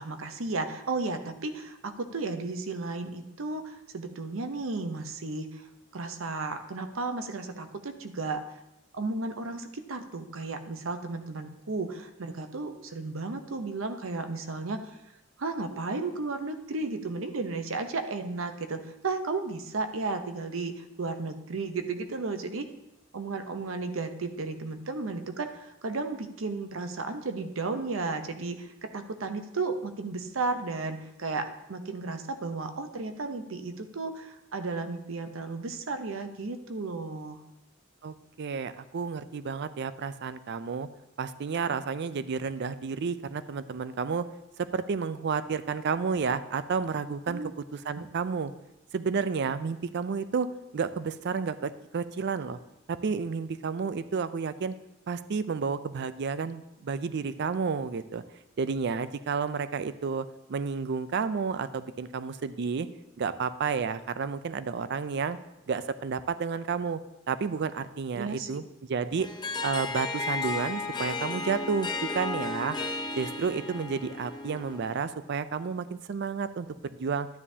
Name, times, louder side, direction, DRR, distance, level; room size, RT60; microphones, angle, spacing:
voice 1, 0.0-5.7 5.9-8.4 8.9-14.8 15.4-22.7 23.1-37.4 47.3-47.5 48.0-48.1 68.2-68.5, right 3 dB, 85° right, 7 dB, 0.7 m, -34 dB
voice 2, 38.0-40.9 41.2-44.3 44.6-47.4 47.7-48.5 48.9-50.5 50.7-52.6 52.9-54.8 55.1-58.2 58.6-62.9 63.2-65.4 65.7-67.0 67.3-69.3 69.6-72.8 73.2-77.3, right 5 dB, 60° right, 13 dB, 0.4 m, -31 dB
Harp, 69.2-75.0, left 3 dB, 20° left, 0.7 m, -34 dB
11.5 x 9.8 x 2.8 m, 0.91 s
head